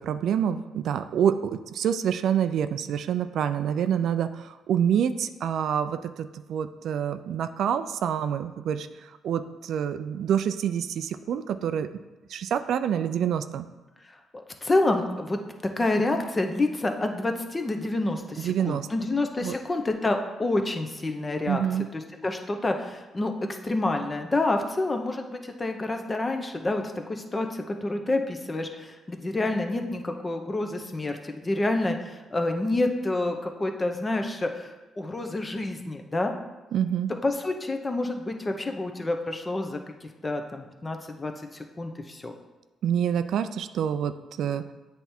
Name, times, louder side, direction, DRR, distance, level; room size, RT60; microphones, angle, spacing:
voice 1, 0.0-11.9 12.3-13.7 18.4-18.9 19.4-19.5 21.5-21.9 36.7-37.1 42.8-44.7, right 8 dB, 70° right, 10 dB, 0.3 m, -27 dB
voice 2, 14.3-15.4 15.8-21.6 21.9-26.8 27.1-36.3 37.2-42.3, left 2 dB, 25° left, 5 dB, 0.7 m, -28 dB
8.2 x 3.4 x 4.4 m, 1.2 s
cardioid pair, 90°, 0 cm